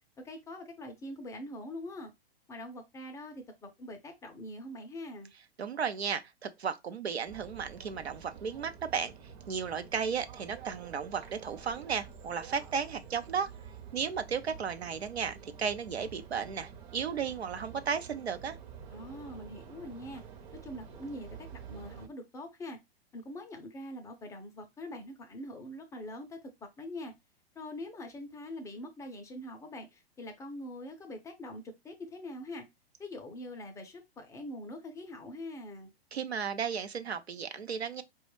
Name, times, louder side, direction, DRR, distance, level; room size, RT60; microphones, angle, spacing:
voice 1, 0.2-2.1 2.5-5.3 18.9-20.2 20.5-22.8 23.1-27.1 27.6-32.6 33.0-35.9, left 1 dB, 10° left, 0.4 m, -43 dB
voice 2, 5.6-9.1 9.5-13.5 13.9-18.6 36.1-38.0, right 6 dB, 90° right, 0.6 m, -34 dB
sound 1, 7.3-22.1, right 7 dB, 50° right, 0.8 m, -49 dB
4.2 x 2.3 x 3.0 m
figure-of-eight pair, 110°, 31 cm